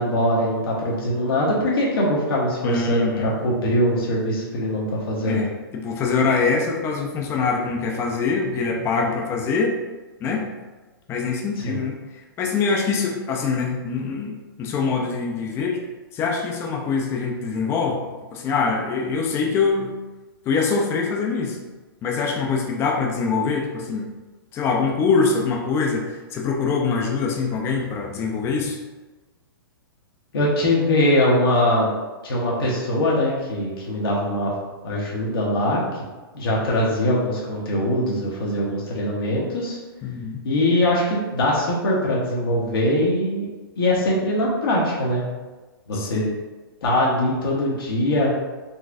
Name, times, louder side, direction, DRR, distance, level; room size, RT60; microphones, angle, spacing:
voice 1, 0.0-5.4 11.6-11.8 30.3-31.9 32.2-34.5 34.8-35.8 36.3-39.8 40.4-43.5 43.8-45.2 45.9-46.2 46.8-48.3, left 1 dB, 70° left, -5 dB, 1.0 m, -22 dB
voice 2, 2.6-3.3 5.2-9.7 10.2-10.5 11.1-12.0 12.4-14.3 14.6-15.8 16.1-19.9 20.5-21.6 22.0-24.1 24.5-26.0 26.3-28.8 40.0-40.4 46.0-46.3, left 4 dB, 20° left, 1 dB, 0.4 m, -24 dB
4.1 x 2.4 x 2.4 m, 1.2 s
hypercardioid pair, 135°, 13 cm